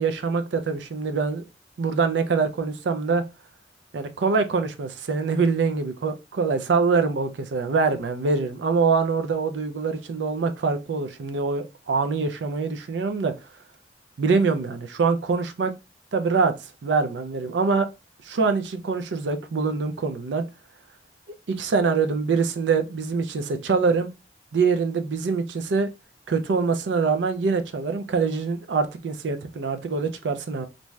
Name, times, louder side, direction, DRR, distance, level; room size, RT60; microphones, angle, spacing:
voice 1, 0.0-1.4 1.8-3.2 3.9-13.3 14.2-15.7 16.1-16.5 16.8-17.9 18.2-20.4 21.5-24.1 24.5-25.9 26.3-30.7, right 4 dB, 80° right, 0.4 m, -24 dB
2.6 x 2.2 x 3.1 m
head